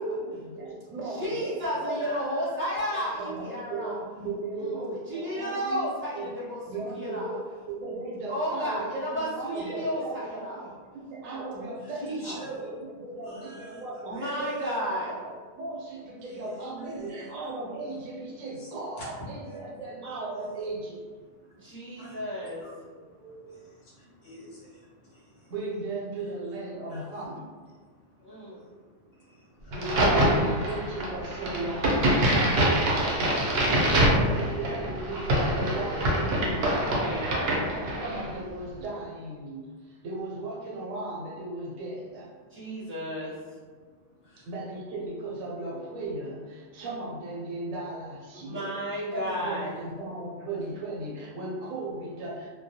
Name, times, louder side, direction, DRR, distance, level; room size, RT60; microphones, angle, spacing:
voice 1, 0.0-1.6 1.9-2.1 2.9-5.9 6.2-6.3 6.7-15.3 15.6-21.0 25.5-27.5 29.7-32.0 33.7-36.8 37.5-42.3 44.4-48.7 49.1-52.5, right 2 dB, 80° right, -4 dB, 1.0 m, -36 dB
voice 2, 1.0-4.0 4.6-7.4 8.3-10.7 12.0-12.5 14.0-15.2 21.5-22.7 28.2-28.6 32.7-33.5 37.0-37.5 42.5-43.3 48.4-49.9, equal, 15° right, -9 dB, 0.4 m, -33 dB
voice 3, 13.2-13.8 14.1-14.4 16.8-17.3 19.4-19.8 22.0-22.1 22.6-22.7 23.2-23.6 24.0-24.8 26.9-27.0 28.3-28.7 29.6-29.7 44.2-44.4, equal, 60° left, -6 dB, 0.7 m, -46 dB
Crack, 29.7-38.3, right 1 dB, 60° right, 0.7 m, -25 dB
2.2 x 2.1 x 2.6 m, 1.5 s
omnidirectional pair, 1.4 m